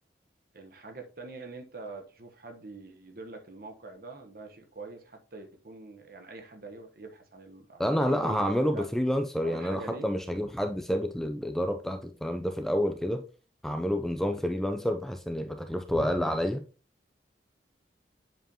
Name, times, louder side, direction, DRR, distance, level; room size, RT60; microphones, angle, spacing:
voice 1, 0.5-8.9 9.4-10.1, right 3 dB, 55° right, 1.1 m, -44 dB
voice 2, 7.8-13.3 13.6-16.6, equal, ahead, 0.4 m, -29 dB
7.7 x 4.9 x 2.8 m
head